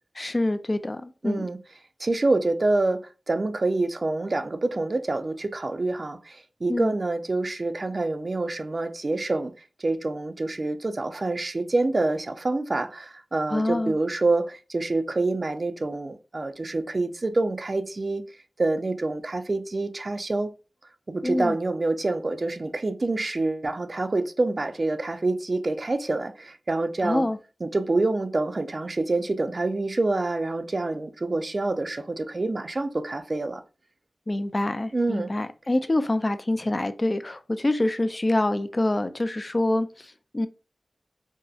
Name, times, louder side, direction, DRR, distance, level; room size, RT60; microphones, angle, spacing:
voice 1, 0.2-1.5 6.7-6.9 13.5-14.0 21.2-21.6 27.0-27.4 34.3-40.5, left 1 dB, 40° left, 0.3 m, -26 dB
voice 2, 1.2-1.6 2.0-9.5 9.8-18.2 18.6-20.5 21.1-27.3 27.6-33.6 34.9-35.3, right 2 dB, 55° right, 0.3 m, -27 dB
2.6 x 2.0 x 2.3 m
cardioid pair, 45°, 0 cm